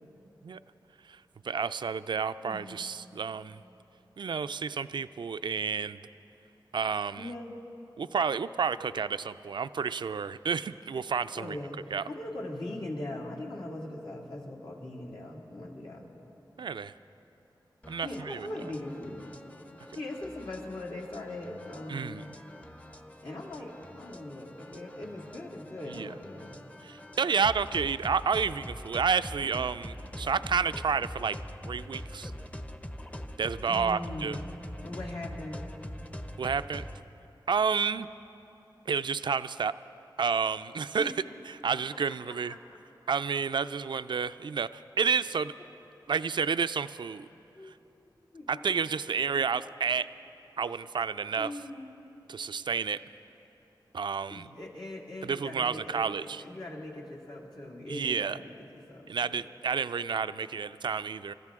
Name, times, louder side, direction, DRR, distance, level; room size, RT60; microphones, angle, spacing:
voice 1, 1.1-3.6 4.2-6.0 6.7-7.3 8.0-11.6 11.9-12.0 16.6-16.9 17.9-18.5 21.9-22.2 25.9-26.1 26.8-31.4 31.6-32.3 33.4-34.4 36.4-36.9 37.5-38.1 38.9-39.7 40.2-41.1 41.5-42.5 43.1-45.5 46.1-47.3 47.7-47.8 48.5-50.1 50.6-51.5 52.3-53.0 53.9-54.5 55.2-56.4 57.9-58.4 59.1-61.3, right 6 dB, 70° right, 13 dB, 0.3 m, -30 dB
voice 2, 2.4-2.8 7.2-7.5 11.3-11.8 12.1-16.1 18.0-19.3 19.9-22.3 23.2-26.6 29.4-29.6 30.2-30.4 33.7-34.4 34.8-35.7 41.0-41.2 42.5-42.6 47.5-47.7 48.3-48.5 49.3-49.5 51.4-52.0 54.3-59.4, left 1 dB, 75° left, -2 dB, 2.2 m, -40 dB
sound 1, 17.8-37.0, equal, 15° left, 0.7 m, -44 dB
25.5 x 14.0 x 3.6 m, 3.0 s
cardioid pair, 40°, 8 cm